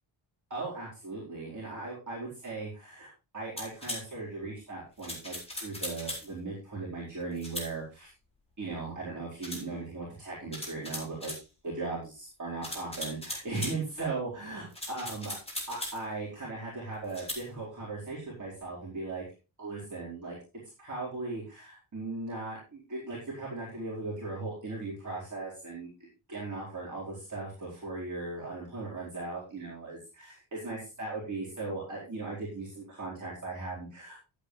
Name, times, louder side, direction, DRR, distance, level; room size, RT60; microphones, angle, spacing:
voice 1, 0.5-8.1 8.6-11.3 11.6-15.4 15.7-19.2 19.6-20.4 20.8-25.9 26.3-34.2, right 3 dB, 35° right, -6 dB, 4.4 m, -38 dB
sound 1, 3.6-4.0 5.0-6.3 7.4-7.7 9.4-9.6 10.5-11.4 12.6-13.8 14.7-16.0 17.1-17.4, left 1 dB, 10° left, 4.3 m, -38 dB
12.0 x 8.5 x 3.2 m, 0.31 s
cardioid pair, 110°, 49 cm